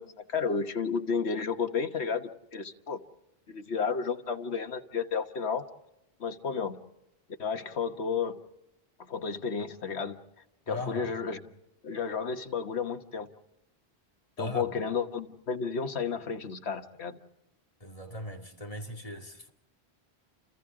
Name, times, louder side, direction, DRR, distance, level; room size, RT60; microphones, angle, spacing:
voice 1, 0.0-3.0 3.5-5.6 6.2-6.8 7.4-8.4 9.0-10.2 10.7-11.4 11.8-13.3 14.4-17.2, left 5 dB, 85° left, 1.5 m, -32 dB
voice 2, 10.7-11.1 14.4-14.6 17.8-19.5, left 1 dB, 35° left, 2.4 m, -38 dB
29.5 x 28.5 x 3.7 m
omnidirectional pair, 1.1 m